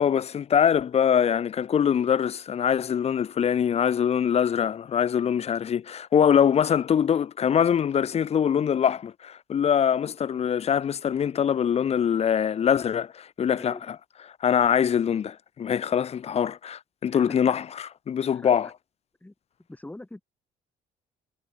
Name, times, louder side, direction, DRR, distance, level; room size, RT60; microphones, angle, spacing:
voice 1, 0.0-13.7 14.4-18.7, left 8 dB, 40° left, 0.8 m, -23 dB
voice 2, 13.5-13.9 17.1-17.6 18.3-18.7 19.2-19.3 19.7-20.2, left 1 dB, 10° left, 6.9 m, -43 dB
cardioid pair, 110°, 17 cm